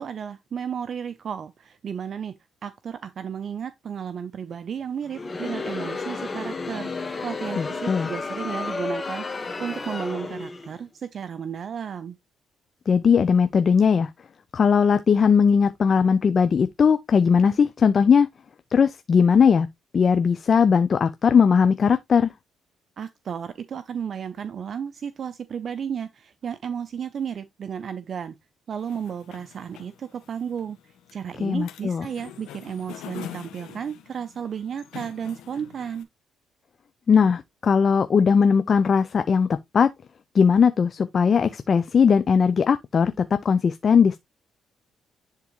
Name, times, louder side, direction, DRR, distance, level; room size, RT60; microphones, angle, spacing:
voice 1, 0.0-6.9 7.2-12.2 23.0-28.4 28.7-36.1, right 7 dB, 55° right, 0.6 m, -33 dB
Crowd, 5.1-10.8, left 3 dB, 25° left, 1.3 m, -32 dB
voice 2, 7.6-8.1 12.9-14.1 14.5-18.3 18.7-19.7 19.9-22.3 31.4-32.1 37.1-39.5 39.7-39.9 40.3-44.2, left 6 dB, 45° left, 0.5 m, -19 dB
sound 1, 28.8-36.0, left 10 dB, 90° left, 1.2 m, -44 dB
10.5 x 3.7 x 3.0 m
cardioid pair, 90°, 0 cm